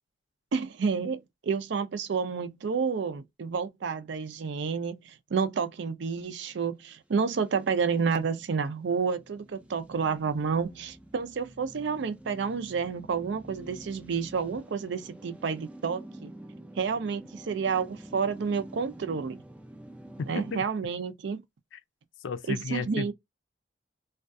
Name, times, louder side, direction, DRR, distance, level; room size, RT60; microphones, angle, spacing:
voice 1, 0.5-16.3 16.8-19.4 20.3-21.4 22.5-23.1, right 5 dB, 65° right, 0.4 m, -30 dB
sound 1, 7.3-20.6, right 1 dB, 5° right, 0.3 m, -48 dB
voice 2, 20.2-20.7 21.7-21.8 22.2-23.1, left 5 dB, 85° left, 0.4 m, -33 dB
2.4 x 2.2 x 2.5 m
head